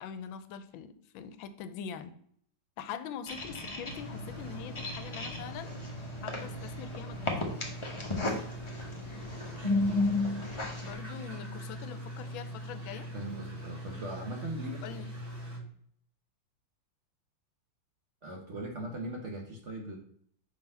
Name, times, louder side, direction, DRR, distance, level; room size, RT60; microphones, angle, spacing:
voice 1, 0.0-2.1 2.8-5.7 6.2-7.5 10.8-13.1 14.8-15.1, left 8 dB, 85° left, 11 dB, 1.4 m, -43 dB
sound 1, 3.3-10.9, left 2 dB, 25° left, 0.6 m, -34 dB
sound 2, 3.9-15.6, equal, 35° right, 2.6 m, -43 dB
voice 2, 13.1-14.8 18.2-20.0, right 1 dB, 50° right, 1 dB, 0.9 m, -39 dB
5.6 x 3.8 x 5.4 m, 0.64 s
omnidirectional pair, 2.2 m